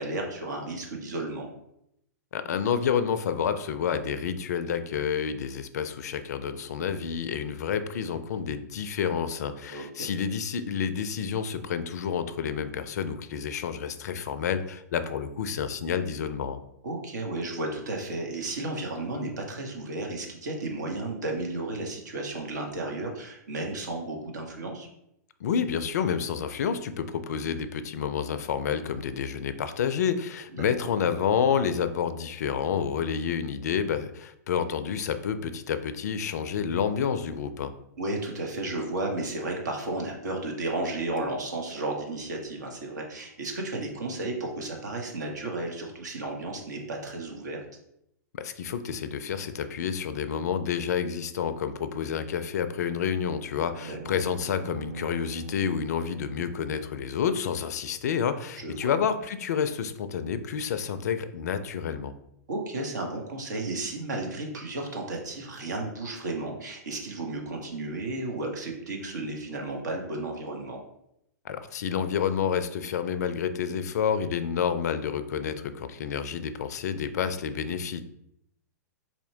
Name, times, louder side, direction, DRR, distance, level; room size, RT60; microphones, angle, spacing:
voice 1, 0.0-1.5 9.7-10.1 16.8-24.9 30.6-30.9 38.0-47.6 53.9-54.2 58.6-59.0 62.5-70.8, right 2 dB, 70° right, 1 dB, 0.9 m, -33 dB
voice 2, 2.3-16.6 25.4-37.7 48.4-62.1 71.4-78.0, left 7 dB, 65° left, 11 dB, 0.4 m, -29 dB
sound 1, 53.4-57.7, right 4 dB, 45° right, 0.7 m, -44 dB
4.2 x 2.8 x 2.7 m, 0.78 s
figure-of-eight pair, 110°, 10 cm